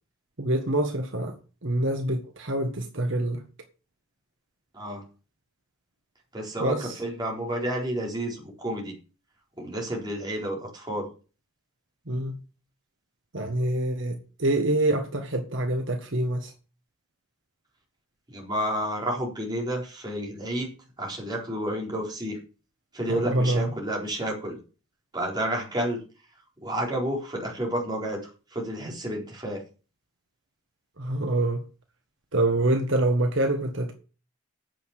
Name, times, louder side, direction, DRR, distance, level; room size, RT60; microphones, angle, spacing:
voice 1, 0.4-1.3 1.6-3.4 6.6-7.0 12.1-12.4 13.3-16.5 23.1-23.7 31.0-31.7 32.3-33.9, right 1 dB, 60° right, 1.5 m, -26 dB
voice 2, 6.3-8.9 9.6-11.1 18.3-20.7 21.0-22.4 22.9-24.6 25.1-26.0 26.6-28.2 28.5-29.6, right 1 dB, 20° right, 4.1 m, -30 dB
9.3 x 7.0 x 8.4 m
head